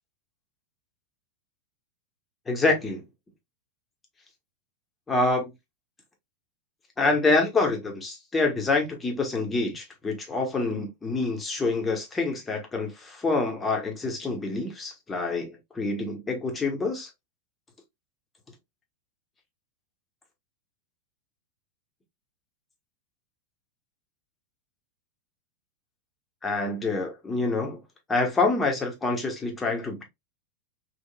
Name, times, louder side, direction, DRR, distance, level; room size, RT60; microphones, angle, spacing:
voice 1, 2.5-3.0 5.1-5.5 7.0-17.1 26.4-27.8 28.1-30.0, left 3 dB, 15° left, 1.1 m, -26 dB
3.7 x 2.4 x 2.3 m
figure-of-eight pair, 90°, 0 cm